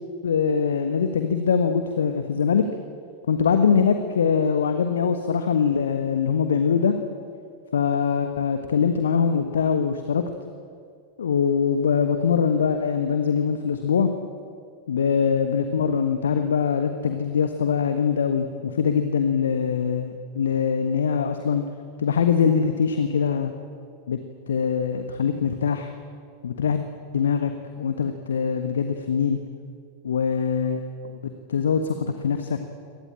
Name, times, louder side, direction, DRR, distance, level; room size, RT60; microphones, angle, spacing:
voice 1, 0.2-2.6 3.3-6.9 7.7-10.2 11.2-14.1 14.9-21.6 22.0-23.5 24.1-24.2 24.5-25.9 26.4-26.8 27.1-27.5 27.8-29.4 30.0-32.6, left 6 dB, 65° left, 8 dB, 1.5 m, -23 dB
25.0 x 19.0 x 8.8 m, 2.2 s
figure-of-eight pair, 90°, 0 cm